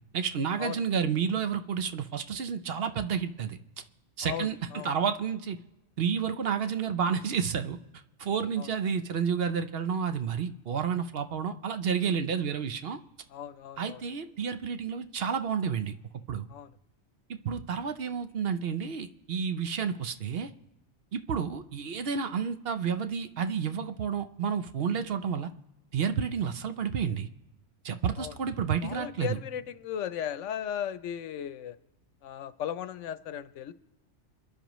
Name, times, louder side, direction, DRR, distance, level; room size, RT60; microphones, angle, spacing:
voice 1, 0.1-3.6 4.2-4.6 4.8-5.6 6.0-7.8 8.2-13.0 13.8-15.9 16.3-16.5 17.4-20.5 21.1-25.5 25.9-27.3 27.8-29.4, right 7 dB, 60° right, 9 dB, 0.9 m, -30 dB
voice 2, 4.2-4.9 8.6-8.7 13.3-14.0 16.5-16.7 28.2-28.3 28.8-31.8 32.2-33.7, left 9 dB, 85° left, 14 dB, 1.0 m, -36 dB
27.5 x 10.5 x 3.1 m, 0.97 s
omnidirectional pair, 1.2 m